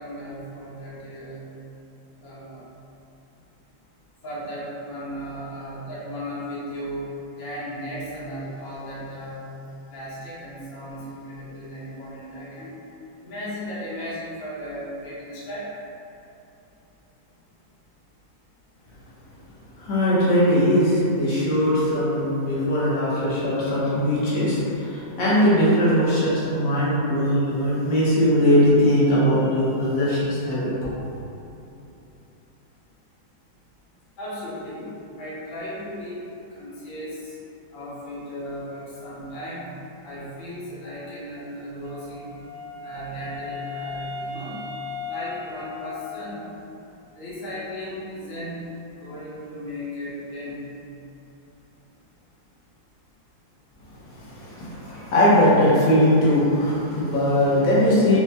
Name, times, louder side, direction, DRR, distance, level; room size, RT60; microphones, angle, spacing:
voice 1, 0.0-1.4 2.2-2.6 4.2-7.1 7.4-9.4 9.9-12.7 13.2-15.7 34.2-34.8 35.2-36.2 36.5-37.1 37.7-39.6 40.0-42.4 42.8-44.6 45.0-46.4 47.2-48.6 49.0-50.6, equal, 85° left, -9 dB, 0.4 m, -35 dB
voice 2, 19.8-30.7 54.2-58.2, equal, 55° left, -9 dB, 1.1 m, -20 dB
Wind instrument woodwind instrument, 41.8-46.6, left 4 dB, 85° right, 1.4 m, -36 dB
4.4 x 2.1 x 2.8 m, 2.9 s
omnidirectional pair, 2.2 m